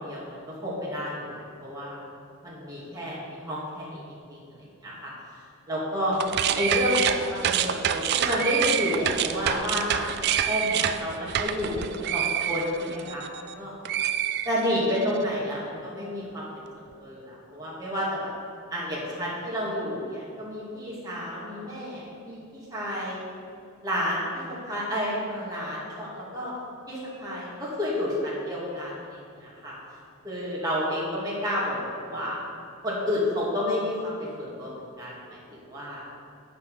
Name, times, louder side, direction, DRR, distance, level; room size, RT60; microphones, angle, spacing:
voice 1, 0.0-2.0 2.4-4.4 4.8-5.1 5.7-6.2 6.5-10.0 10.4-11.9 12.1-13.7 14.4-16.5 17.0-18.3 18.7-23.2 23.8-26.5 26.9-29.7 30.2-32.4 32.8-36.1, left 1 dB, 15° right, -7 dB, 2.0 m, -30 dB
sound 1, 6.1-13.5 13.8-15.0, right 9 dB, 50° right, 0.3 m, -27 dB
9.3 x 5.9 x 4.8 m, 2.5 s
head